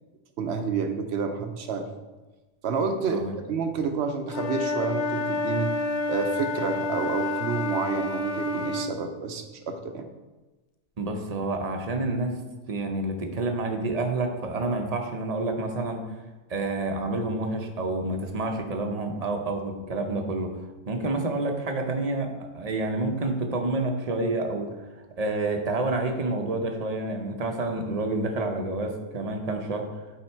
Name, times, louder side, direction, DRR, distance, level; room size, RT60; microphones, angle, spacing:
voice 1, 0.4-1.9 2.6-3.2 3.5-5.7 6.1-10.1, right 5 dB, 70° right, 7 dB, 1.0 m, -29 dB
Wind instrument woodwind instrument, 4.3-8.9, left 2 dB, 75° left, 0.9 m, -29 dB
voice 2, 11.0-12.4 12.7-16.0 16.5-20.5 20.9-24.8 25.2-29.9, right 2 dB, 40° right, 4 dB, 0.7 m, -28 dB
8.7 x 3.6 x 4.4 m, 1.2 s
omnidirectional pair, 1.2 m